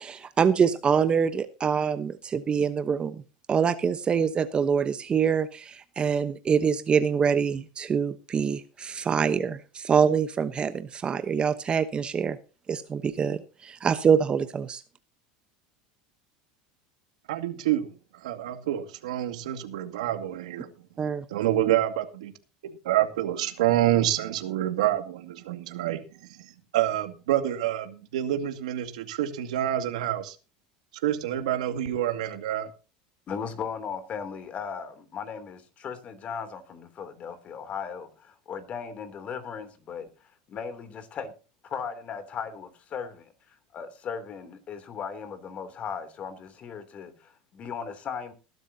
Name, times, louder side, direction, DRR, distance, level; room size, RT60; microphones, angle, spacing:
voice 1, 0.0-3.2 3.5-12.4 12.7-14.8 21.0-21.2, right 6 dB, 30° right, 1.0 m, -25 dB
voice 2, 17.3-17.9 18.2-20.7 21.3-22.3 22.6-26.0 26.7-30.4 31.0-32.7, right 12 dB, 85° right, 2.2 m, -27 dB
voice 3, 33.3-40.1 40.5-41.3 41.6-43.3 43.7-48.3, left 6 dB, 40° left, 3.1 m, -37 dB
19.5 x 12.0 x 2.8 m
supercardioid pair, 110°, 4 cm